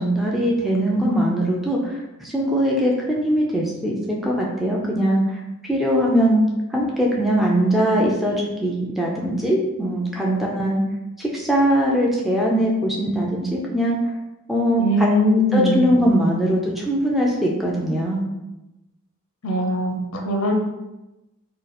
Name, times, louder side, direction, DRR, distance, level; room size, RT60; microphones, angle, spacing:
voice 1, 0.0-5.4 5.7-6.4 6.7-10.8 11.2-14.0 14.5-15.1 15.5-18.2, equal, ahead, -4 dB, 0.5 m, -21 dB
voice 2, 14.8-15.9 19.4-20.5, equal, 70° left, 2 dB, 0.7 m, -20 dB
3.8 x 2.4 x 4.1 m, 0.97 s
head